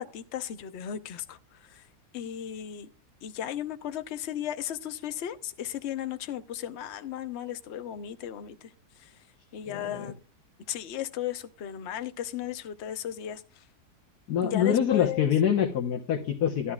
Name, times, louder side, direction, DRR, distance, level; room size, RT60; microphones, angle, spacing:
voice 1, 0.0-1.4 2.1-2.9 3.2-8.6 9.5-10.2 10.7-13.4 14.4-15.3, left 10 dB, 55° left, 0.9 m, -35 dB
voice 2, 9.6-10.1 14.3-16.7, left 8 dB, 70° left, 1.6 m, -25 dB
13.0 x 11.0 x 2.4 m
omnidirectional pair, 1.7 m